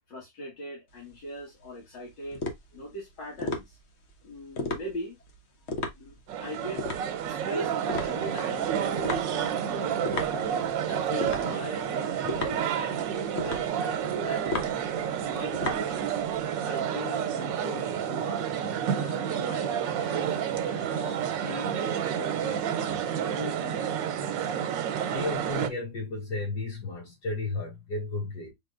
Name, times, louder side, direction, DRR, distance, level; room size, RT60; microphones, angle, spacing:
voice 1, 0.1-2.4 2.7-3.8 4.2-5.2 6.0-6.8 7.1-7.7 8.0-10.0 10.3-13.0 13.3-14.7 15.3-16.2 16.6-18.5 18.9-24.0, left 1 dB, 80° left, 2.2 m, -40 dB
sound 1, 0.9-16.5, left 2 dB, 50° left, 0.9 m, -36 dB
sound 2, 6.3-25.7, right 9 dB, 85° right, 1.4 m, -30 dB
voice 2, 25.1-28.5, left 3 dB, 65° left, 3.2 m, -34 dB
5.3 x 3.6 x 2.4 m
omnidirectional pair, 1.9 m